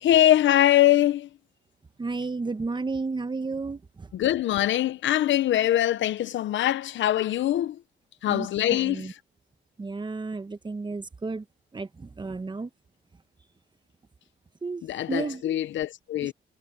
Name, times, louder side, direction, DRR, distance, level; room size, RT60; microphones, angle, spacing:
voice 1, 0.0-1.3 4.1-7.8 8.2-9.2 14.8-16.3, left 13 dB, 70° left, 0.8 m, -23 dB
voice 2, 2.0-4.1 8.3-9.1 9.8-11.4 11.7-12.7 14.6-14.8 15.1-15.4 16.2-16.3, right 3 dB, 25° right, 1.1 m, -32 dB
cardioid pair, 90°, 20 cm